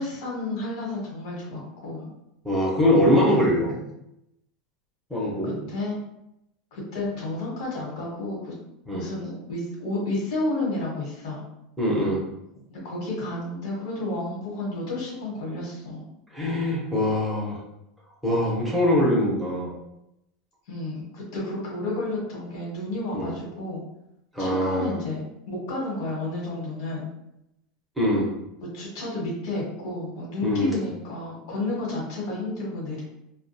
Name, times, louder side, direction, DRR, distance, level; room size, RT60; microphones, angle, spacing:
voice 1, 0.0-2.1 3.3-3.5 5.4-6.0 6.7-8.5 8.9-11.4 12.7-16.0 20.7-23.8 24.4-27.1 28.6-33.0, left 2 dB, 65° left, -4 dB, 1.0 m, -31 dB
voice 2, 2.4-3.8 5.1-5.5 8.9-9.1 11.8-12.2 16.3-17.6 18.2-19.7 23.1-23.3 24.3-25.0 28.0-28.3 30.4-30.7, left 1 dB, ahead, -5 dB, 0.6 m, -23 dB
2.3 x 2.1 x 2.6 m, 0.83 s
supercardioid pair, 165°, 3 cm